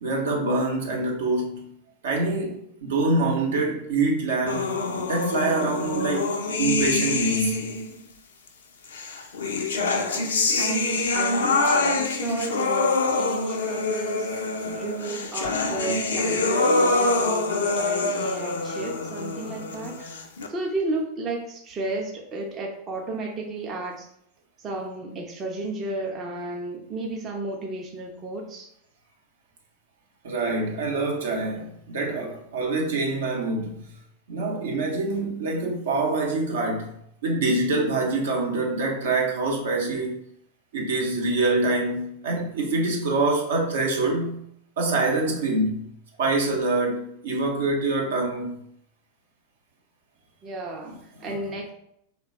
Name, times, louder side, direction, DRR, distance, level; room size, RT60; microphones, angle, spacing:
voice 1, 0.0-1.7 2.0-4.7 5.1-7.7 13.5-13.6 14.7-14.8 15.6-15.7 30.2-33.8 34.3-36.9 37.2-40.1 40.7-44.4 44.8-45.8 46.2-48.6 50.9-51.5, right 2 dB, 60° right, 0.7 m, -25 dB
sound 1, 4.5-7.9 8.9-20.5, left 3 dB, 65° left, 0.4 m, -25 dB
voice 2, 9.8-10.3 10.6-14.3 14.7-20.1 20.5-24.1 24.6-28.7 50.4-51.7, right 2 dB, 25° right, 0.5 m, -33 dB
3.2 x 2.2 x 3.6 m
figure-of-eight pair, 90°, 0 cm